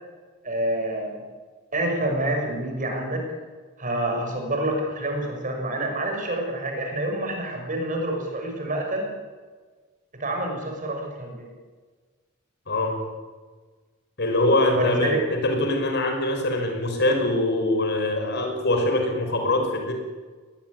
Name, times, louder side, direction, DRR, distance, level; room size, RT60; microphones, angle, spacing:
voice 1, 0.4-1.2 1.7-3.2 3.8-9.1 10.2-11.5 14.7-15.2, right 1 dB, 40° right, 2 dB, 6.1 m, -27 dB
voice 2, 12.7-13.0 14.2-19.9, left 1 dB, 55° left, 4 dB, 5.7 m, -23 dB
20.5 x 20.5 x 9.7 m, 1.4 s
head